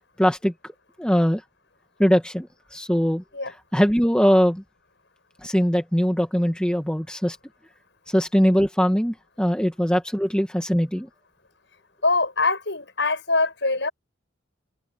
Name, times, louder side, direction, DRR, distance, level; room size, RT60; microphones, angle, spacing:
voice 1, 0.2-0.5 1.0-1.4 2.0-3.2 3.7-4.6 5.4-7.4 8.1-11.1, equal, 5° left, 1.4 m, -21 dB
voice 2, 12.0-13.9, left 3 dB, 65° left, 6.8 m, -23 dB
head